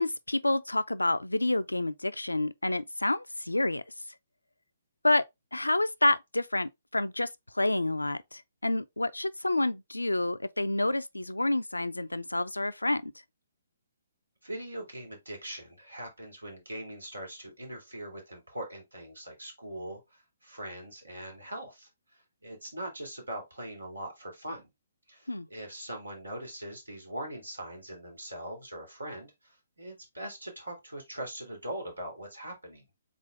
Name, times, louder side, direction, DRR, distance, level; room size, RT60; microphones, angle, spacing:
voice 1, 0.0-3.8 5.0-5.2 5.5-7.3 7.5-13.1 25.3-25.5, left 2 dB, 90° left, 0.4 m, -28 dB
voice 2, 14.4-21.9 22.4-24.7 25.1-32.9, right 1 dB, 85° right, 2.2 m, -41 dB
3.9 x 3.7 x 3.3 m
figure-of-eight pair, 130°, 0 cm